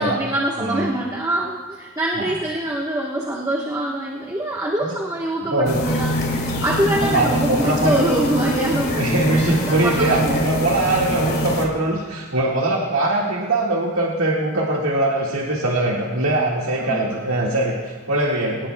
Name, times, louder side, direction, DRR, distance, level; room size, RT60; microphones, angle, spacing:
voice 1, 0.0-10.5 16.8-17.1, right 1 dB, 15° right, -3 dB, 1.2 m, -24 dB
voice 2, 5.4-5.8 7.0-8.0 9.0-18.7, right 2 dB, 85° right, -3 dB, 1.8 m, -21 dB
sound 1, 5.7-11.7, equal, 50° left, 2.0 m, -24 dB
23.0 x 18.0 x 2.2 m, 1.4 s
head